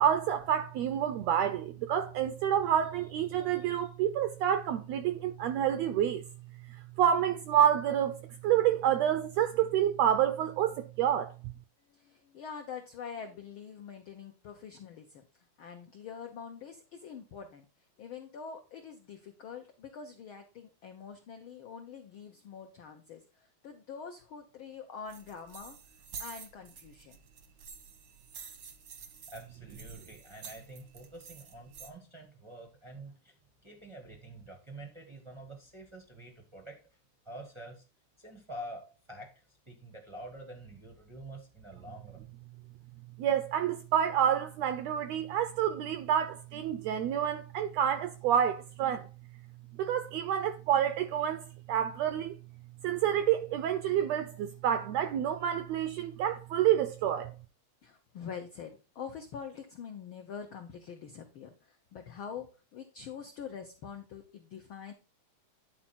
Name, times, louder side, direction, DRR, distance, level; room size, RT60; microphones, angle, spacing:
voice 1, 0.0-6.2 6.7-11.3 43.2-49.1 49.8-52.4 52.8-57.3, right 10 dB, 85° right, 1.5 m, -28 dB
voice 2, 11.9-15.2 15.6-17.6 18.0-25.8 26.2-27.2 57.8-64.9, left 6 dB, 80° left, 1.1 m, -45 dB
sound 1, 25.1-31.9, right 6 dB, 65° right, 1.1 m, -49 dB
voice 3, 29.3-33.3 33.6-36.8 37.2-37.8 38.2-42.2, right 1 dB, 45° right, 0.3 m, -47 dB
10.0 x 4.4 x 4.3 m
omnidirectional pair, 3.5 m